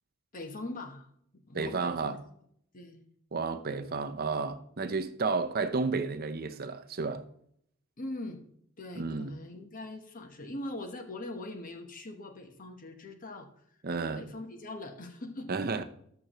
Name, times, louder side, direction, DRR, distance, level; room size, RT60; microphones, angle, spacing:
voice 1, 0.3-1.1 1.5-2.2 2.7-3.0 8.0-8.4 8.8-13.5 14.1-15.5, left 2 dB, 40° left, 1.1 m, -41 dB
voice 2, 1.5-2.2 3.3-7.2 9.0-9.3 13.8-14.2 15.5-15.8, right 4 dB, 45° right, 0.7 m, -32 dB
13.0 x 6.0 x 3.0 m
head